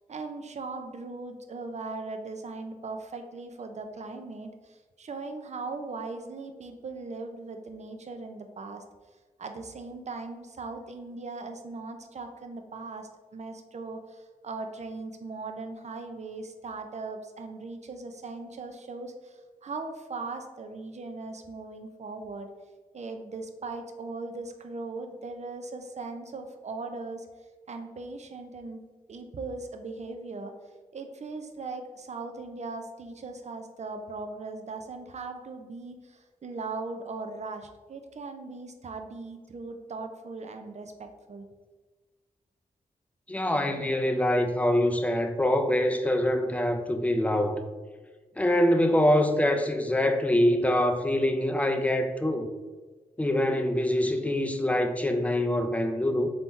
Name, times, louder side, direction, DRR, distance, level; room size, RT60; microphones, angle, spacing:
voice 1, 0.0-8.8 9.4-22.5 22.9-27.3 27.7-28.8 29.1-30.5 30.9-41.5, right 3 dB, 50° right, 5 dB, 0.5 m, -39 dB
voice 2, 43.3-47.6 48.4-52.5 53.2-56.3, left 1 dB, 10° left, 6 dB, 0.5 m, -24 dB
3.5 x 2.9 x 4.0 m, 1.3 s
cardioid pair, 65°, 15 cm